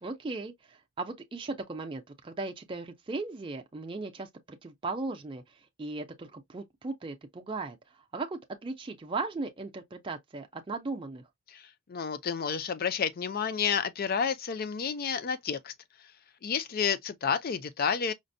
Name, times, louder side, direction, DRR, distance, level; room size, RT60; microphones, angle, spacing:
voice 1, 0.0-4.3 4.6-5.4 5.8-7.8 8.1-11.2, right 3 dB, 25° right, 0.4 m, -37 dB
voice 2, 11.5-15.7 16.4-18.1, left 6 dB, 45° left, 0.4 m, -30 dB
5.0 x 2.0 x 2.6 m
head